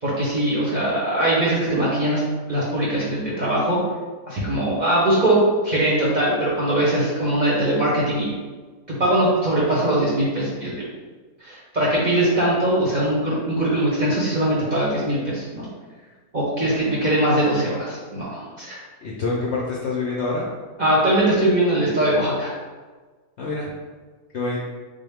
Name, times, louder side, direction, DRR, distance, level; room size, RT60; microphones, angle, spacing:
voice 1, 0.0-2.2 2.5-3.8 4.3-5.4 5.6-8.3 9.0-10.8 11.4-15.7 16.3-18.8 20.8-22.6, right 1 dB, 40° right, -7 dB, 0.7 m, -21 dB
voice 2, 19.0-20.5 23.4-23.7 24.3-24.6, left 3 dB, 65° left, -4 dB, 0.7 m, -26 dB
3.7 x 2.2 x 3.4 m, 1.4 s
omnidirectional pair, 1.5 m